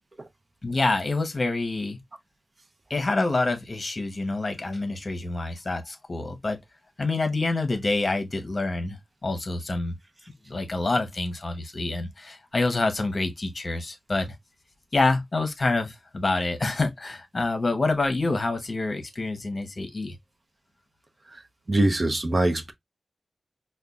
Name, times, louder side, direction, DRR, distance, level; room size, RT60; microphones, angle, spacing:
voice 1, 0.6-2.0 2.9-6.6 7.0-9.0 9.2-9.9 10.5-14.3 14.9-20.1, left 3 dB, 40° left, 0.9 m, -27 dB
voice 2, 21.7-22.7, right 1 dB, 35° right, 0.6 m, -23 dB
5.3 x 2.3 x 2.3 m
wide cardioid pair, 105°, 0 cm